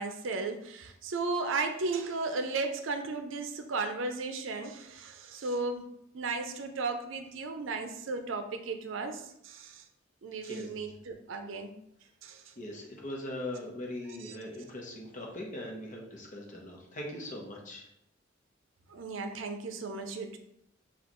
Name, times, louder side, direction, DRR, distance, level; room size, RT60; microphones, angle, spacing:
voice 1, 0.0-9.8 10.2-11.7 12.2-12.5 14.2-14.4 18.9-20.4, right 3 dB, 75° right, 6 dB, 0.5 m, -35 dB
voice 2, 12.6-17.9, left 1 dB, 40° left, 0 dB, 0.9 m, -40 dB
6.3 x 2.4 x 3.0 m, 0.78 s
head